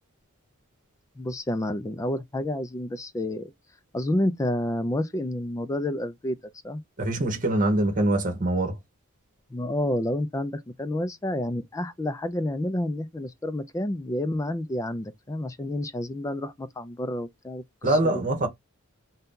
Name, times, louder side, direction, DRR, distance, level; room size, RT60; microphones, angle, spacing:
voice 1, 1.2-3.5 3.9-6.4 6.6-6.8 9.5-18.2, left 1 dB, 15° left, 0.3 m, -29 dB
voice 2, 7.0-8.8 17.8-18.5, right 1 dB, 35° right, 1.0 m, -24 dB
2.7 x 2.2 x 3.6 m
head